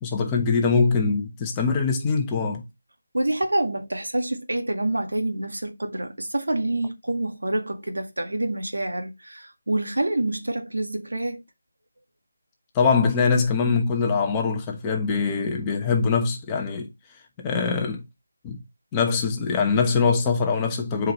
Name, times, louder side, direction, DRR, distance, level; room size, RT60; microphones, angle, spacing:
voice 1, 0.0-2.6 12.7-16.9 17.4-18.0 18.4-18.6 18.9-21.1, left 5 dB, 10° left, 1.1 m, -23 dB
voice 2, 3.1-11.4, right 1 dB, 90° right, 1.8 m, -27 dB
7.9 x 4.7 x 3.1 m
figure-of-eight pair, 170°, 0 cm